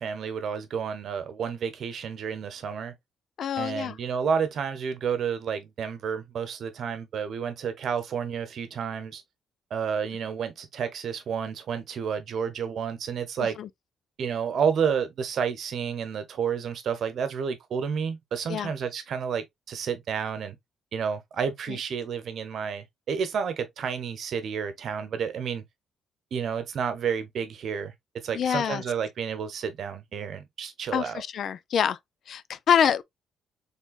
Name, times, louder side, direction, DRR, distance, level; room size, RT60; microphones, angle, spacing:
voice 1, 0.0-2.9 3.6-9.2 9.7-13.6 14.2-20.6 20.9-25.6 26.3-31.2, right 7 dB, 65° right, 0.9 m, -30 dB
voice 2, 3.4-3.9 13.4-13.7 18.5-18.7 21.7-21.8 28.3-28.8 30.9-32.0 32.3-33.0, left 8 dB, 65° left, 0.4 m, -26 dB
4.4 x 3.3 x 2.3 m
cardioid pair, 90°, 0 cm